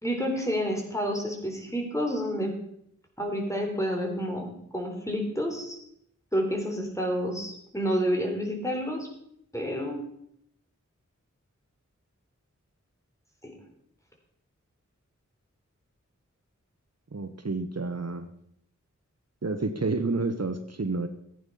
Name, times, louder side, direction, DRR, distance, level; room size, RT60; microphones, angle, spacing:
voice 1, 0.0-2.6 3.2-5.8 6.3-9.1 9.5-10.1 13.4-13.6, equal, 10° left, 1 dB, 3.8 m, -29 dB
voice 2, 17.1-18.3 19.4-21.1, right 3 dB, 55° right, 8 dB, 1.0 m, -29 dB
15.0 x 9.2 x 5.5 m, 0.72 s
wide cardioid pair, 50°, 30 cm